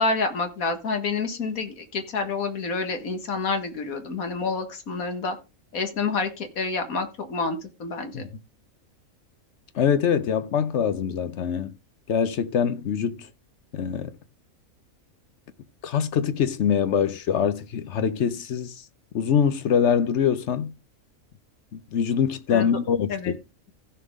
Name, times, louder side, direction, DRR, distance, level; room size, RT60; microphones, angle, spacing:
voice 1, 0.0-5.4 5.7-8.3 22.5-22.7 23.1-23.3, left 4 dB, 80° left, 2.0 m, -28 dB
voice 2, 9.7-11.7 12.1-13.3 13.7-14.1 15.8-18.7 19.1-20.7 21.7-23.3, left 7 dB, 60° left, 0.9 m, -24 dB
15.5 x 5.5 x 3.6 m
omnidirectional pair, 1.5 m